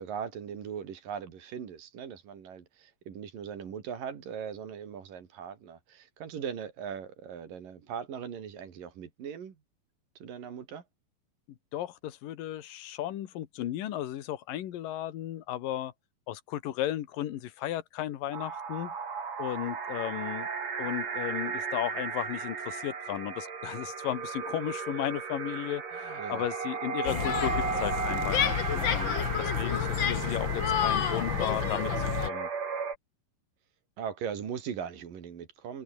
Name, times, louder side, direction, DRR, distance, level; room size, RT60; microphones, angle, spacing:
voice 1, 0.0-9.5 10.2-10.8 26.2-26.4 34.0-35.8, right 7 dB, 80° right, 4.6 m, -39 dB
voice 2, 11.7-15.9 16.3-18.9 19.4-20.5 20.8-32.5, left 12 dB, 85° left, 3.2 m, -35 dB
sound 1, 18.3-32.9, right 6 dB, 50° right, 4.6 m, -35 dB
sound 2, 27.0-32.3, left 9 dB, 65° left, 1.2 m, -29 dB
omnidirectional pair, 3.9 m